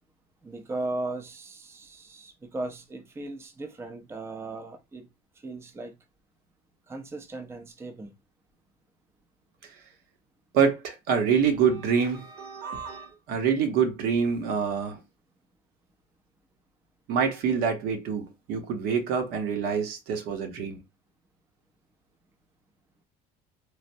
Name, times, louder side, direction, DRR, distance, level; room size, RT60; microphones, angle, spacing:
voice 1, 0.4-5.1 5.3-6.0 6.9-8.2, right 2 dB, 15° right, 0.5 m, -37 dB
voice 2, 10.5-15.0 17.1-20.8, right 6 dB, 70° right, 0.8 m, -26 dB
3.2 x 2.0 x 2.6 m
supercardioid pair, 100°, 17 cm